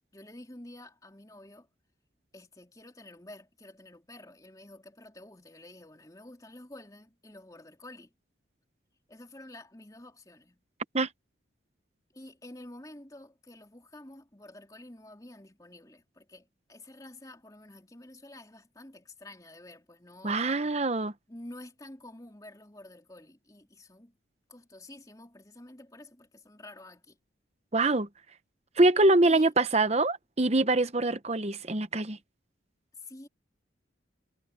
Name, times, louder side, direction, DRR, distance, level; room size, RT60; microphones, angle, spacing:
voice 1, 0.1-1.7 2.3-8.1 9.1-10.6 12.1-20.5 21.3-24.1 24.5-27.2 29.2-29.5 32.9-33.3, left 1 dB, 20° left, 3.7 m, -49 dB
voice 2, 20.2-21.1 27.7-28.1 28.8-32.2, right 2 dB, 35° right, 0.9 m, -24 dB
head